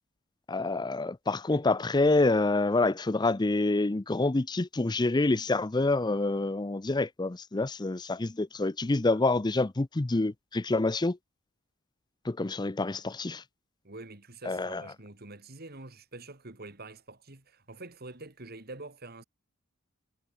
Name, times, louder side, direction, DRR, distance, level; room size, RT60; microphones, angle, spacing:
voice 1, 0.5-11.2 12.2-13.4 14.5-14.8, left 2 dB, 20° left, 0.5 m, -27 dB
voice 2, 13.8-19.2, right 2 dB, 45° right, 2.7 m, -46 dB
head